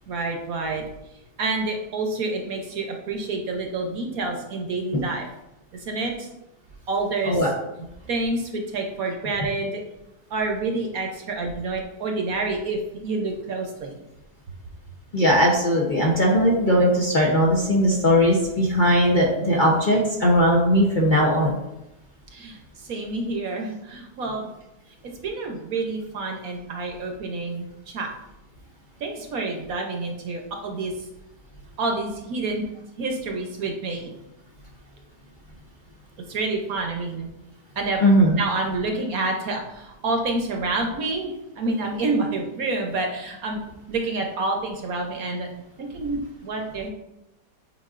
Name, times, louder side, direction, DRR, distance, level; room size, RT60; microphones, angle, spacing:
voice 1, 0.1-0.8 1.4-5.3 5.7-6.3 6.9-7.4 8.1-9.8 10.3-13.9 22.3-24.5 25.2-28.1 29.0-30.9 31.8-32.7 33.0-34.1 36.3-37.3 37.8-38.0 38.4-43.6 43.9-45.5 45.8-46.9, right 3 dB, 60° right, 2 dB, 1.2 m, -28 dB
voice 2, 15.1-21.6 38.0-38.4, equal, 35° left, -3 dB, 0.9 m, -19 dB
8.3 x 4.7 x 2.5 m, 0.90 s
omnidirectional pair, 1.8 m